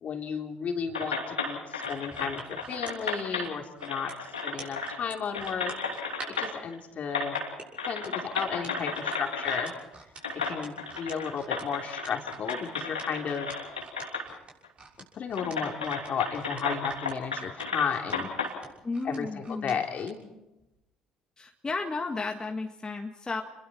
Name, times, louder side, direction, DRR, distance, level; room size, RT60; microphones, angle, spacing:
voice 1, 0.0-4.1 4.4-5.7 6.3-7.4 7.9-9.7 10.3-13.5 15.2-18.3 19.0-20.2, left 7 dB, 50° left, 3 dB, 3.1 m, -33 dB
sound 1, 0.9-3.5 3.8-5.0 5.3-6.7 7.1-7.5 7.8-9.7 10.2-14.3 14.6-14.7 15.4-18.5, left 4 dB, 90° left, 2.8 m, -33 dB
sound 2, 1.8-6.5 7.4-20.2 20.6-20.8, right 3 dB, 35° right, 6.4 m, -47 dB
voice 2, 18.8-19.8 21.4-23.4, left 3 dB, 25° left, 3 dB, 1.8 m, -33 dB
29.0 x 21.5 x 4.4 m, 0.94 s
figure-of-eight pair, 55°, 3 cm